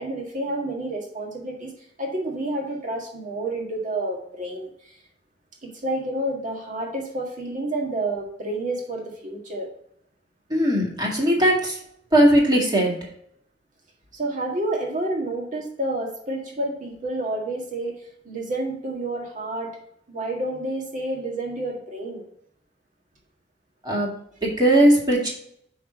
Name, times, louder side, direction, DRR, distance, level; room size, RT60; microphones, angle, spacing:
voice 1, 0.0-1.7 2.0-5.0 5.6-9.7 14.1-18.0 18.3-19.8 20.1-22.3, right 1 dB, 45° right, 0 dB, 1.7 m, -29 dB
voice 2, 10.5-11.8 12.1-12.9 23.8-24.1 24.4-25.3, right 1 dB, 25° right, -2 dB, 2.1 m, -18 dB
5.9 x 4.7 x 4.9 m, 0.71 s
head